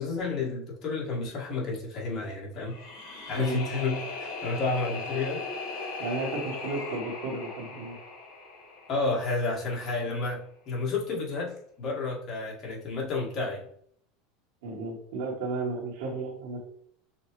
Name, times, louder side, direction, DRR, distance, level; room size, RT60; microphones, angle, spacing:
voice 1, 0.0-2.7 3.3-5.4 8.9-10.4 10.7-13.7, left 3 dB, 40° left, -3 dB, 1.9 m, -31 dB
sound 1, 2.6-9.7, left 3 dB, 65° left, 1.9 m, -38 dB
voice 2, 6.0-7.9 14.6-16.6, right 3 dB, 75° right, -3 dB, 1.5 m, -33 dB
6.4 x 2.3 x 3.2 m, 0.65 s
supercardioid pair, 110°, 0 cm